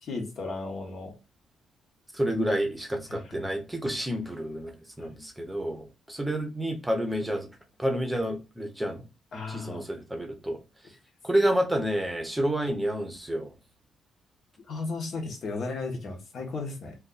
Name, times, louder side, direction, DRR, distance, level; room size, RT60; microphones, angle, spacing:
voice 1, 0.0-1.1 3.1-3.4 5.0-5.1 9.3-9.8 14.7-16.9, left 3 dB, 60° left, 1.0 m, -35 dB
voice 2, 2.1-7.5 7.8-9.0 9.5-10.6 11.2-13.5, right 1 dB, 10° right, 0.7 m, -29 dB
2.5 x 2.3 x 3.8 m
cardioid pair, 105°, 0 cm